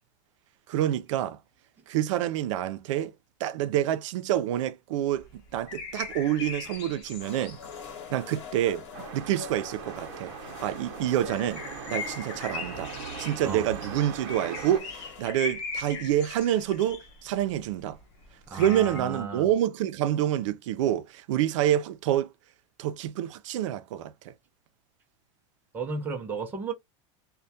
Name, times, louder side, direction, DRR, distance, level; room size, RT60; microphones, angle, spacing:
voice 1, 0.7-1.4 1.9-3.1 3.4-5.3 5.5-7.6 8.1-10.3 10.6-12.9 13.2-18.0 18.5-22.3 22.8-24.3, right 11 dB, 90° right, 0.4 m, -27 dB
sound 1, 5.2-8.1 8.4-9.0 9.3-10.0 10.4-19.0, left 4 dB, 55° left, 0.8 m, -40 dB
sound 2, 7.2-15.3, left 7 dB, 75° left, 1.1 m, -46 dB
sound 3, 8.9-14.8, right 7 dB, 60° right, 0.8 m, -40 dB
voice 2, 18.5-19.5 25.7-26.7, right 4 dB, 10° right, 0.5 m, -34 dB
2.2 x 2.1 x 2.6 m
supercardioid pair, 170°, 16 cm